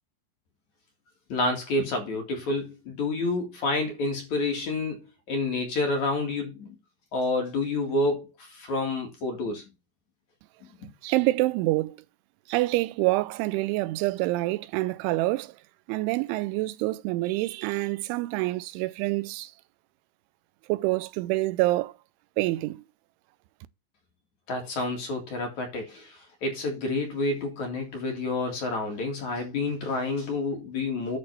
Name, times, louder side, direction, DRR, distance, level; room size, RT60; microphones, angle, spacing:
voice 1, 1.3-5.0 5.3-6.8 7.1-9.6 10.6-10.9 24.5-31.2, left 2 dB, 50° left, 2.8 m, -29 dB
voice 2, 10.8-12.0 12.5-15.6 15.9-19.5 20.7-21.9 22.4-22.8, right 19 dB, 90° right, 3.1 m, -27 dB
11.0 x 4.5 x 5.7 m
omnidirectional pair, 5.3 m